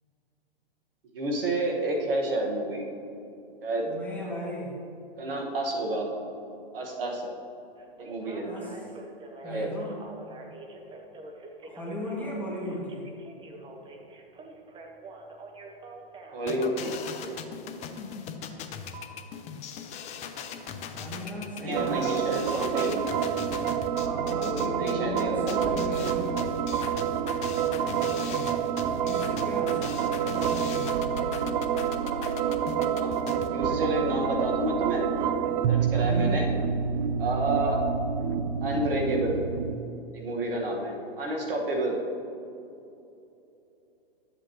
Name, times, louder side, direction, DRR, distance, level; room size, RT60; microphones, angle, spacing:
voice 1, 1.1-2.9 3.6-3.9 5.2-6.1 6.7-7.3 8.0-8.5 9.4-9.7 16.3-16.9 21.6-23.1 24.8-25.7 33.0-33.2 33.5-35.1 35.7-36.5 37.2-37.8 38.6-39.4 40.1-42.0, right 1 dB, 70° right, 0 dB, 1.7 m, -29 dB
voice 2, 3.9-4.8 8.4-8.9 9.4-10.0 11.6-13.1 20.9-22.4 24.0-26.6 28.9-30.7 36.0-36.4, left 1 dB, 5° left, -6 dB, 2.1 m, -36 dB
Telephone, 7.8-17.4 18.9-19.1, right 2 dB, 15° right, 0.9 m, -46 dB
sound 1, 16.5-33.5, left 7 dB, 25° left, 0.6 m, -39 dB
sound 2, 21.7-39.8, right 8 dB, 50° right, 0.6 m, -28 dB
12.0 x 7.8 x 3.1 m, 2.8 s
hypercardioid pair, 120°, 30 cm